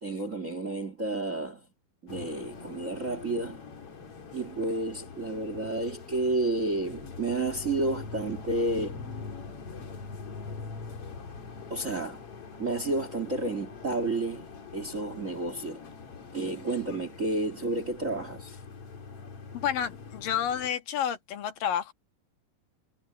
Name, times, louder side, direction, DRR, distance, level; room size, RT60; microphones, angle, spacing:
voice 1, 0.0-1.6 2.0-3.6 4.3-9.0 11.7-12.2 12.6-14.5 14.7-15.8 16.3-18.6, right 2 dB, 30° right, 1.6 m, -31 dB
sound 1, 2.1-20.7, left 5 dB, 45° left, 3.2 m, -43 dB
voice 2, 19.6-21.9, left 9 dB, 80° left, 3.1 m, -30 dB
omnidirectional pair, 4.0 m